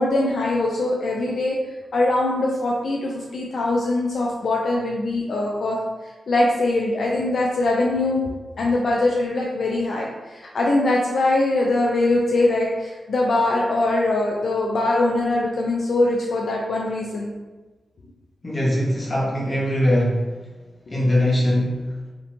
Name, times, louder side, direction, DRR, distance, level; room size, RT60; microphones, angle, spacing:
voice 1, 0.0-5.8 6.0-8.2 8.6-17.3, left 2 dB, 65° left, -3 dB, 0.3 m, -22 dB
voice 2, 18.4-20.4 20.9-21.9, left 1 dB, 30° left, -5 dB, 0.8 m, -21 dB
2.5 x 2.1 x 2.9 m, 1.2 s
wide cardioid pair, 90°, 0 cm